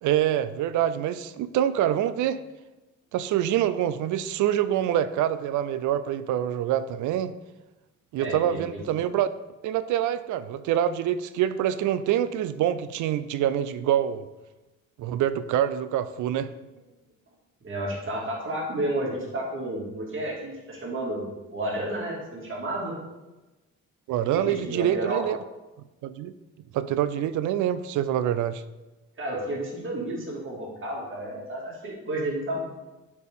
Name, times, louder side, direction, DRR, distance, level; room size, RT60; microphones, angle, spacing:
voice 1, 0.0-2.4 3.1-7.3 8.1-9.3 9.6-14.2 15.0-16.5 24.1-25.4 26.0-26.3 26.7-28.6, right 11 dB, 80° right, 14 dB, 0.5 m, -25 dB
voice 2, 8.2-9.0 17.6-22.9 24.3-25.2 29.2-32.6, right 1 dB, 40° right, -2 dB, 2.2 m, -31 dB
8.5 x 4.4 x 3.6 m, 1.1 s
cardioid pair, 90°, 30 cm